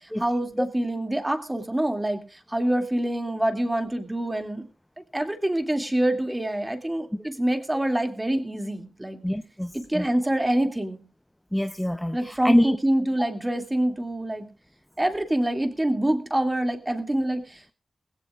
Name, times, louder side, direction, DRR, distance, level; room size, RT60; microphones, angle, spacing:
voice 1, 0.0-4.6 5.1-9.2 9.7-11.0 12.1-14.5 15.0-17.7, right 1 dB, 15° right, 2.4 m, -26 dB
voice 2, 9.2-10.1 11.5-12.8, equal, 5° left, 0.8 m, -25 dB
20.0 x 16.5 x 2.4 m
wide cardioid pair, 85°, 0 cm